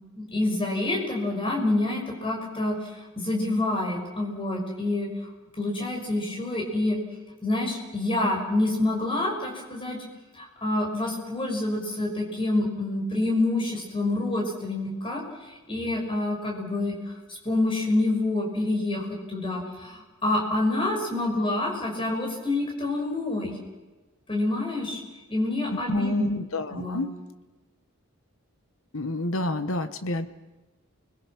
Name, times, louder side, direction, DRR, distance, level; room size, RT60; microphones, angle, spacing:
voice 1, 0.1-5.1 5.5-7.0 7.4-10.0 10.3-17.0 17.3-23.6 24.3-25.0 25.3-26.2 26.7-27.0, left 2 dB, 25° left, 0 dB, 6.2 m, -27 dB
voice 2, 25.7-27.1 28.9-30.3, left 2 dB, 70° left, 10 dB, 1.4 m, -29 dB
29.5 x 21.5 x 6.1 m, 1.2 s
head